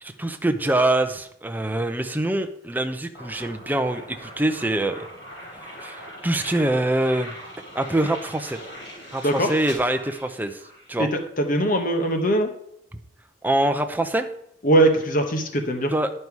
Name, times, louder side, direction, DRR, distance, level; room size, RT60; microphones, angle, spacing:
voice 1, 0.0-5.1 5.8-7.4 7.7-8.6 9.1-10.6 10.9-11.1 13.4-14.3 15.9-16.1, right 1 dB, 10° right, 6 dB, 0.6 m, -24 dB
sound 1, 3.1-10.9, equal, 60° left, 3.3 m, -41 dB
voice 2, 9.2-9.5 11.0-12.5 14.6-15.9, right 1 dB, 45° left, 5 dB, 1.0 m, -21 dB
11.0 x 5.5 x 4.6 m, 0.74 s
head